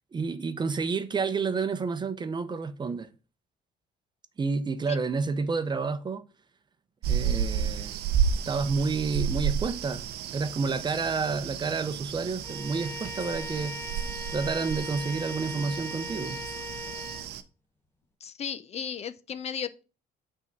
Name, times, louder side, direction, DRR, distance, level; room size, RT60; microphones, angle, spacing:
voice 1, 0.1-3.1 4.4-6.2 7.1-8.0 8.5-10.0 10.3-13.8 14.3-16.4, right 4 dB, 25° right, 0.7 m, -29 dB
sound 1, 7.0-17.4, right 8 dB, 75° right, 0.7 m, -32 dB
Bowed string instrument, 12.4-17.3, left 2 dB, 15° left, 1.0 m, -40 dB
voice 2, 18.2-19.8, left 8 dB, 40° left, 0.5 m, -35 dB
5.9 x 3.6 x 5.9 m
cardioid pair, 110°, 17 cm